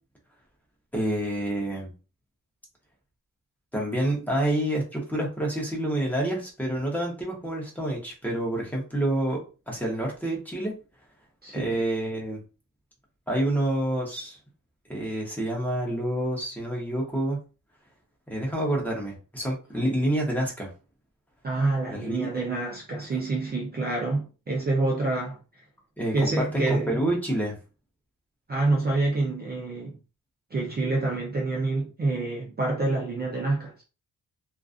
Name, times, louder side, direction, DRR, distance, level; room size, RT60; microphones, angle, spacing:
voice 1, 0.9-1.9 3.7-9.4 9.7-10.7 11.5-12.4 13.3-14.4 14.9-17.4 18.3-20.7 21.9-22.3 26.0-26.1 26.5-27.6, right 1 dB, 5° left, 0.7 m, -28 dB
voice 2, 11.4-11.7 21.4-25.4 26.1-27.0 28.5-30.0 30.5-33.8, right 2 dB, 30° right, 0.5 m, -27 dB
2.4 x 2.3 x 2.4 m
wide cardioid pair, 160°, 35 cm